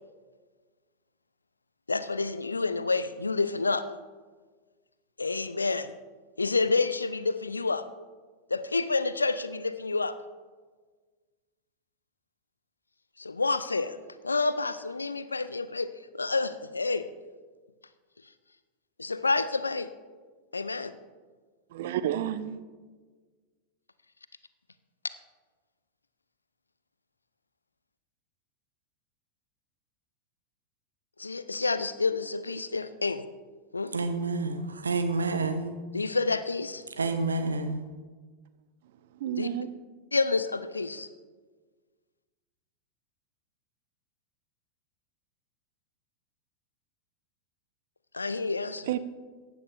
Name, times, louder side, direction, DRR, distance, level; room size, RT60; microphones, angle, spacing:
voice 1, 1.9-3.8 5.2-5.9 6.4-7.8 8.5-10.1 13.2-14.0 14.2-17.1 19.0-19.9 20.5-20.9 31.2-33.2 33.7-33.9 35.9-36.8 39.4-39.5 40.1-41.1 48.1-48.9, left 3 dB, 80° left, 14 dB, 0.5 m, -28 dB
voice 2, 21.7-22.6 39.1-39.7 48.9-49.0, right 11 dB, 55° right, 13 dB, 0.6 m, -30 dB
voice 3, 33.9-35.7 37.0-37.8, right 3 dB, 75° right, 8 dB, 1.1 m, -29 dB
15.0 x 10.0 x 3.4 m, 1.4 s
figure-of-eight pair, 90°, 0 cm